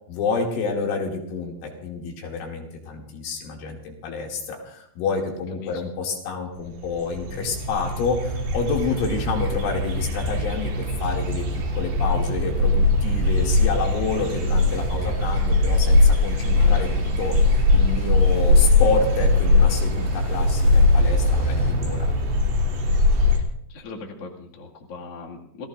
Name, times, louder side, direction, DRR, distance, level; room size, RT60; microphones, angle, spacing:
voice 1, 0.1-16.9 17.2-22.1, left 4 dB, 70° left, 0 dB, 4.9 m, -28 dB
sound 1, 6.6-6.7 6.8-23.4, left 2 dB, 55° right, 4.5 m, -20 dB
sound 2, 13.2-21.7, left 2 dB, 25° left, 3.2 m, -44 dB
voice 2, 16.4-16.9 23.7-25.6, left 3 dB, 45° left, -2 dB, 2.1 m, -39 dB
28.5 x 17.5 x 2.6 m, 0.73 s
omnidirectional pair, 5.9 m